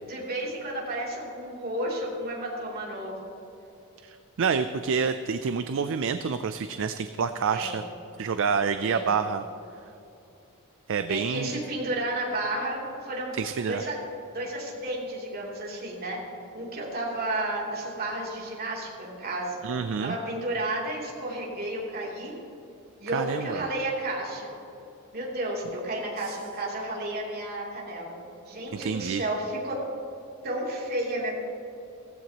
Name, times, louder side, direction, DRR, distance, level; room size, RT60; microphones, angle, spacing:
voice 1, 0.0-3.3 7.5-7.8 8.8-9.1 11.1-13.4 13.7-14.0 14.3-16.2 16.5-19.6 20.0-22.4 23.0-24.5 25.1-28.2 28.5-29.8 30.4-31.3, right 1 dB, 45° right, -4 dB, 3.1 m, -32 dB
voice 2, 4.0-7.8 8.2-9.4 10.9-11.6 13.3-13.8 19.6-20.2 23.1-23.7 26.2-26.3 28.7-29.2, right 6 dB, 60° right, 10 dB, 0.4 m, -28 dB
17.0 x 15.0 x 3.0 m, 2.8 s
head